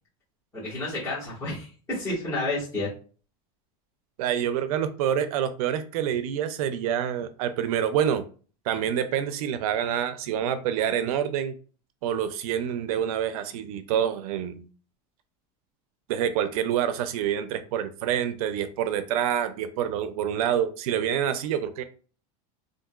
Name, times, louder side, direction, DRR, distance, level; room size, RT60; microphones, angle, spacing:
voice 1, 0.5-2.9, left 2 dB, 15° left, -10 dB, 1.7 m, -30 dB
voice 2, 4.2-8.2 8.7-11.5 12.0-14.7 16.1-21.8, right 9 dB, 80° right, 11 dB, 0.5 m, -27 dB
3.7 x 2.6 x 2.3 m, 0.39 s
supercardioid pair, 150°, 18 cm